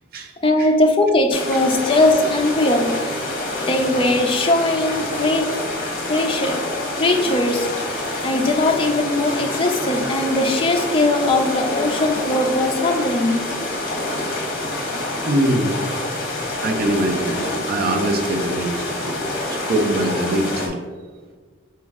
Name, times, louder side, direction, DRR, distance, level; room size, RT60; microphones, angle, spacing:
voice 1, 0.4-3.0 3.7-5.5 6.1-6.6 7.0-7.7 8.2-13.6 14.3-14.4, left 2 dB, 25° left, 3 dB, 0.4 m, -19 dB
sound 1, 1.3-20.7, left 2 dB, 45° left, 0.9 m, -27 dB
voice 2, 15.2-15.8 16.6-20.7, right 1 dB, 45° right, 4 dB, 0.5 m, -23 dB
4.4 x 3.1 x 3.5 m, 1.4 s
head